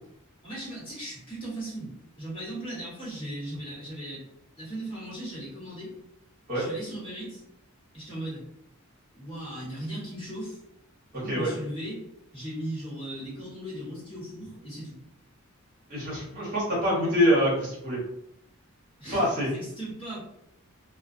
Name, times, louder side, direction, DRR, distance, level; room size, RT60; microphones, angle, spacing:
voice 1, 0.4-4.2 4.6-5.9 6.5-7.4 7.9-8.4 9.1-10.6 11.1-12.0 12.3-15.0 19.0-20.2, right 1 dB, 25° left, -8 dB, 1.3 m, -37 dB
voice 2, 11.1-11.5 15.9-18.0 19.1-19.5, equal, 45° right, -6 dB, 1.1 m, -25 dB
2.3 x 2.2 x 2.6 m, 0.78 s
head